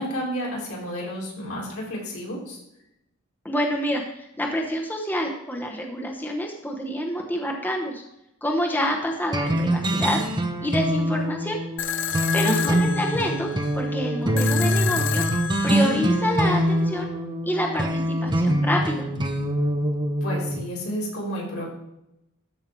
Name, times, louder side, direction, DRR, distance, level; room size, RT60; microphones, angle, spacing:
voice 1, 0.0-2.6 12.4-12.8 20.2-21.6, equal, 80° left, -3 dB, 3.9 m, -31 dB
voice 2, 3.4-8.0 8.4-10.2 10.6-11.6 12.3-13.5 13.7-15.2 15.6-17.1 17.5-19.1, equal, 10° left, 1 dB, 1.0 m, -27 dB
sound 1, 9.3-20.6, equal, 20° right, 0.8 m, -24 dB
sound 2, 11.8-16.8, left 8 dB, 60° left, 0.7 m, -30 dB
13.5 x 5.7 x 4.6 m, 0.84 s
head